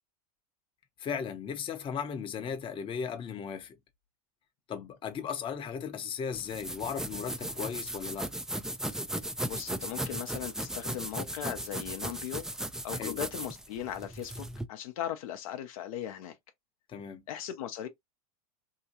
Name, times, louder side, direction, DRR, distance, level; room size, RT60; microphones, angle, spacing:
voice 1, 1.0-3.8 4.7-8.3 12.9-13.2 16.9-17.2, left 7 dB, 30° left, 0.7 m, -36 dB
sound 1, 6.3-14.6, right 1 dB, 5° right, 0.3 m, -37 dB
voice 2, 9.4-12.5 12.8-16.4 17.3-17.9, left 10 dB, 65° left, 0.7 m, -38 dB
2.8 x 2.3 x 2.8 m
hypercardioid pair, 100°, 19 cm